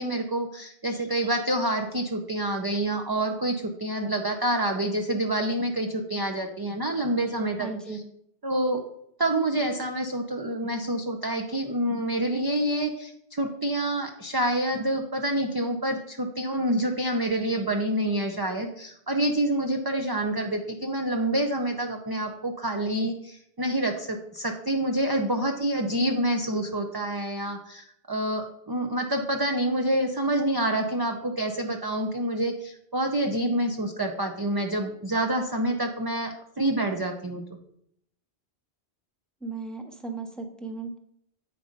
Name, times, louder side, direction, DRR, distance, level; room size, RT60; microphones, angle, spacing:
voice 1, 0.0-8.0 8.4-8.8 9.2-37.4, right 1 dB, 30° right, 3 dB, 0.5 m, -27 dB
voice 2, 7.6-8.0 39.4-41.0, right 4 dB, ahead, 3 dB, 0.8 m, -36 dB
8.3 x 5.1 x 5.1 m, 0.72 s
omnidirectional pair, 1.1 m